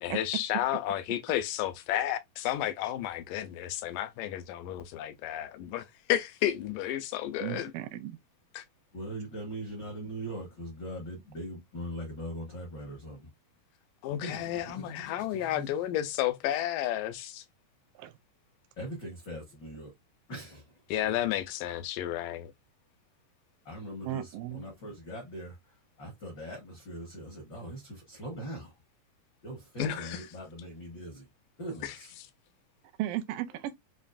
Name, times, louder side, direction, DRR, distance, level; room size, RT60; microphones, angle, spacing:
voice 1, 0.0-7.7 8.5-8.6 14.0-17.4 20.9-22.5 29.8-30.3 31.8-32.0, left 12 dB, 80° left, 2.1 m, -32 dB
voice 2, 7.4-8.2 18.0-18.1 24.0-24.6 33.0-33.8, right 14 dB, 85° right, 2.3 m, -35 dB
voice 3, 8.9-13.3 14.2-16.0 18.8-19.9 20.3-20.6 23.6-25.5 26.0-28.7 29.4-31.2 31.6-32.1, equal, 65° left, 1.1 m, -41 dB
5.9 x 2.4 x 2.4 m
omnidirectional pair, 4.1 m